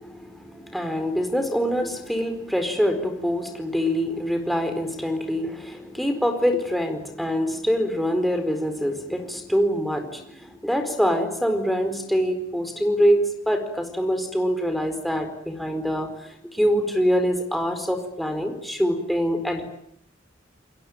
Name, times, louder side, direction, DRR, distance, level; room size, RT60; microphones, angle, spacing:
voice 1, 0.0-19.6, equal, ahead, 5 dB, 4.5 m, -25 dB
29.0 x 22.0 x 9.0 m, 0.71 s
head